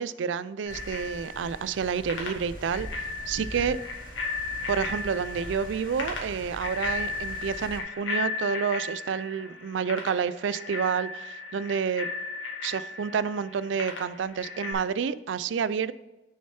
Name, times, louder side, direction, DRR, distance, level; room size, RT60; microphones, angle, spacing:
voice 1, 0.0-2.9 3.3-3.8 4.7-12.1 12.6-15.9, right 6 dB, 75° right, 16 dB, 0.4 m, -29 dB
Bicycle bell, 0.7-14.7, left 3 dB, 85° left, 1.9 m, -36 dB
sound 1, 0.7-7.8, right 1 dB, 50° right, 1.0 m, -43 dB
6.6 x 6.5 x 4.3 m, 1.0 s
head